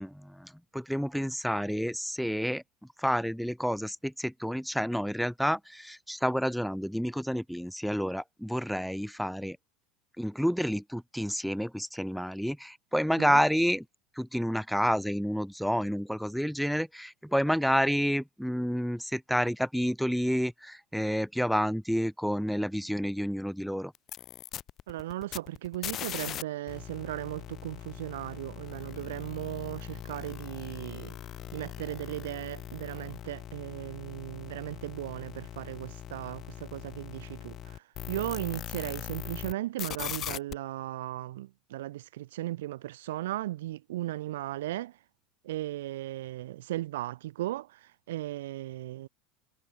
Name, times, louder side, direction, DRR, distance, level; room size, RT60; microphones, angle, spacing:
voice 1, 0.0-2.6 3.0-9.6 10.2-13.8 14.1-23.9, equal, ahead, 1.4 m, -29 dB
sound 1, 24.0-26.4 26.7-39.5 39.8-40.5, left 11 dB, 45° left, 1.9 m, -40 dB
voice 2, 24.9-31.1 31.5-44.9 45.4-49.1, right 15 dB, 80° right, 1.0 m, -37 dB
hypercardioid pair, 95°, 0 cm